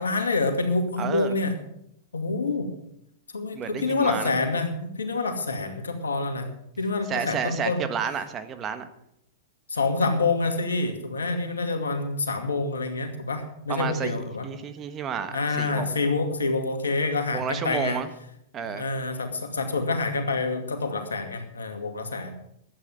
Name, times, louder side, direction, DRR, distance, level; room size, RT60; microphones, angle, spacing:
voice 1, 0.0-1.5 2.1-2.7 3.3-6.5 6.8-7.8 9.7-14.5 15.3-18.0 18.6-22.3, left 3 dB, 90° left, 5 dB, 2.3 m, -27 dB
voice 2, 1.0-1.4 3.5-4.3 7.1-8.9 13.7-15.9 17.3-18.1 18.5-18.9, right 7 dB, 30° right, 10 dB, 1.4 m, -31 dB
11.5 x 9.1 x 7.9 m, 0.76 s
hypercardioid pair, 110°, 0 cm